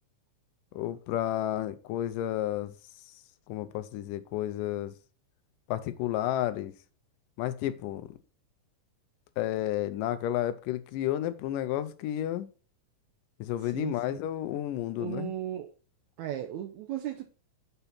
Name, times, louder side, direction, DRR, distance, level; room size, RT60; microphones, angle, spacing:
voice 1, 0.7-2.7 3.5-4.9 5.7-6.7 7.4-8.1 9.4-12.5 13.4-15.3, left 12 dB, 80° left, 2.1 m, -31 dB
voice 2, 13.6-14.2 15.0-15.7 16.2-17.2, right 11 dB, 85° right, 1.6 m, -36 dB
6.8 x 4.0 x 5.6 m
omnidirectional pair, 4.0 m